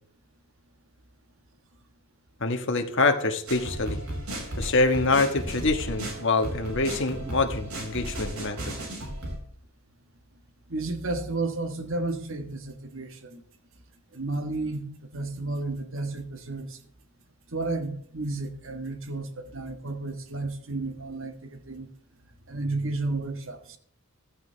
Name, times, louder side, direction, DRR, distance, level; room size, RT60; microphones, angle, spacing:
voice 1, 2.4-4.0 4.6-8.7, left 3 dB, 55° left, 1.5 m, -25 dB
sound 1, 3.5-9.4, right 1 dB, 80° right, 5.5 m, -35 dB
voice 2, 10.7-13.4 14.1-16.8 17.5-21.9 22.5-23.8, right 2 dB, 60° right, 1.5 m, -32 dB
14.5 x 14.5 x 3.4 m
head